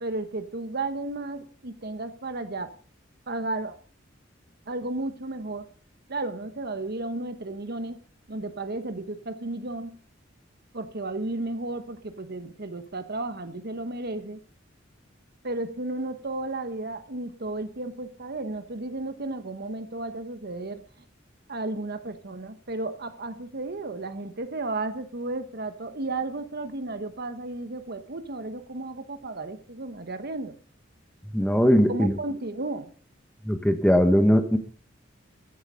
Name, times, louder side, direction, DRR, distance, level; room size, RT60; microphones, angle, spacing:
voice 1, 0.0-2.7 3.3-3.7 4.7-5.7 6.1-8.0 8.3-10.0 10.7-14.4 15.4-20.9 21.5-30.6 31.9-32.9, right 2 dB, 55° right, 9 dB, 1.2 m, -33 dB
voice 2, 31.3-32.1 33.4-34.6, equal, 5° left, 7 dB, 1.4 m, -20 dB
13.5 x 10.0 x 5.6 m, 0.43 s
head